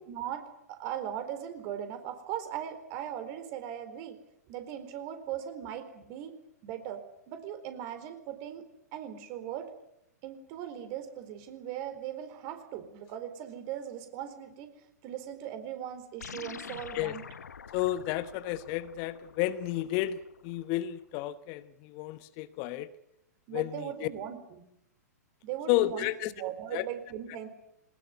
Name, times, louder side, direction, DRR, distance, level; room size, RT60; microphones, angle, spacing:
voice 1, 0.1-4.2 4.5-6.4 6.6-8.6 8.9-9.7 10.2-14.7 15.0-17.2 23.5-24.6 25.4-27.5, right 10 dB, 40° right, 9 dB, 4.2 m, -39 dB
sound 1, 16.2-20.9, left 7 dB, 70° left, 1.2 m, -47 dB
voice 2, 17.7-22.9 23.5-24.1 25.7-26.3 26.7-26.8, left 14 dB, 40° left, 14 dB, 1.1 m, -31 dB
22.0 x 20.0 x 9.5 m, 0.82 s
figure-of-eight pair, 105°, 9 cm